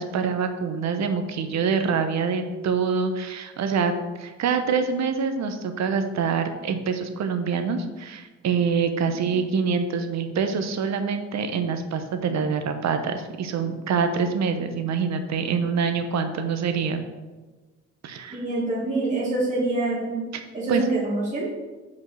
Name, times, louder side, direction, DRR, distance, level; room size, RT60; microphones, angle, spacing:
voice 1, 0.0-3.9 4.2-17.0 18.0-18.4 20.7-20.8, right 5 dB, 65° right, 7 dB, 0.9 m, -25 dB
voice 2, 18.3-20.3 20.5-21.5, right 2 dB, 25° right, -6 dB, 1.8 m, -26 dB
5.3 x 5.2 x 6.2 m, 1.3 s
cardioid pair, 90°, 30 cm